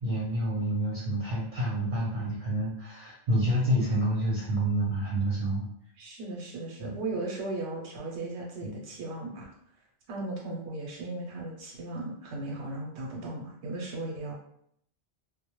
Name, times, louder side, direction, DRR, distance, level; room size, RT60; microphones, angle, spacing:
voice 1, 0.0-5.7 6.8-7.0 8.6-8.8, right 1 dB, 55° right, -4 dB, 0.6 m, -28 dB
voice 2, 6.0-9.5 10.1-14.3, right 2 dB, 90° right, -1 dB, 0.9 m, -36 dB
2.1 x 2.0 x 2.9 m, 0.70 s
omnidirectional pair, 1.1 m